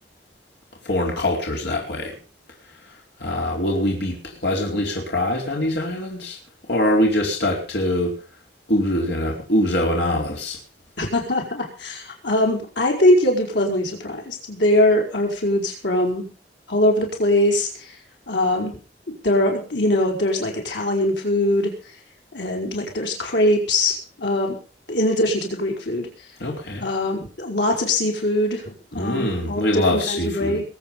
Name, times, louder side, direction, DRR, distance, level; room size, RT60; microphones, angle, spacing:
voice 1, 0.8-2.1 3.2-6.4 6.7-8.1 8.7-10.6 26.4-26.8 28.9-30.6, left 1 dB, 65° left, -1 dB, 4.5 m, -23 dB
voice 2, 11.0-16.3 16.7-17.7 18.3-18.7 19.2-21.7 22.3-24.5 24.9-26.1 26.8-30.6, left 1 dB, 90° left, 1 dB, 5.2 m, -22 dB
22.0 x 8.9 x 5.6 m, 0.37 s
head